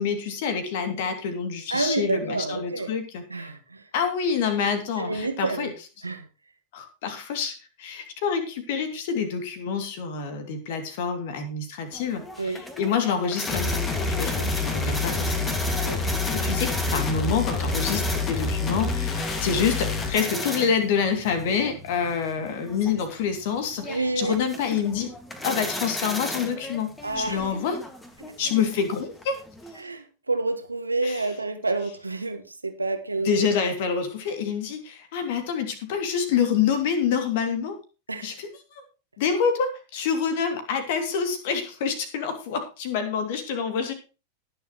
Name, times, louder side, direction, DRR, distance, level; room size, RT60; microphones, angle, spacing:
voice 1, 0.0-3.5 3.9-5.7 6.7-13.8 14.1-15.5 16.3-25.1 25.4-27.8 28.4-29.4 31.0-31.2 33.2-37.8 38.2-38.8 39.2-43.9, left 6 dB, 50° left, 7 dB, 2.7 m, -27 dB
voice 2, 1.7-2.9 3.3-3.9 5.0-5.7 6.0-6.3 12.4-12.6 14.4-14.5 15.8-16.0 23.9-24.4 27.0-27.4 29.8-33.5 38.1-38.4, right 3 dB, 80° right, 6 dB, 1.6 m, -29 dB
sound 1, 11.9-29.8, left 1 dB, 10° left, 2.0 m, -36 dB
sound 2, 13.5-20.2, left 4 dB, 25° left, 2.2 m, -27 dB
19.5 x 7.0 x 3.1 m, 0.32 s
figure-of-eight pair, 90°, 0 cm